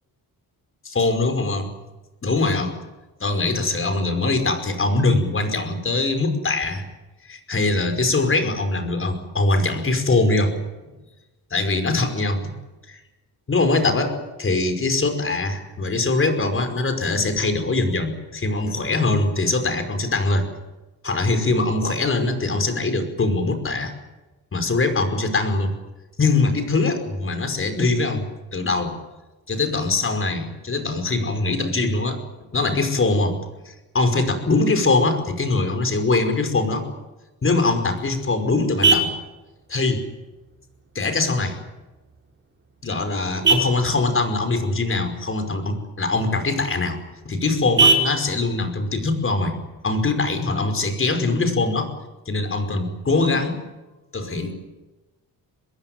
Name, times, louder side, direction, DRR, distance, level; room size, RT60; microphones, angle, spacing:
voice 1, 0.9-1.7 2.2-2.7 3.2-6.8 7.3-10.5 11.5-12.5 12.9-13.0 13.5-20.4 21.0-23.9 24.5-25.7 26.2-28.3 28.5-28.9 29.5-32.2 32.5-33.4 33.7-36.9 37.4-39.1 39.7-40.1 41.0-41.6 42.8-47.0 47.3-49.5 49.8-51.9 52.3-53.6 54.1-54.6, left 3 dB, 30° left, 8 dB, 5.3 m, -22 dB
Vehicle horn car horn honking, 37.5-50.5, right 3 dB, 30° right, 5.8 m, -27 dB
24.5 x 21.5 x 9.1 m, 1.1 s
cardioid pair, 135°, 39 cm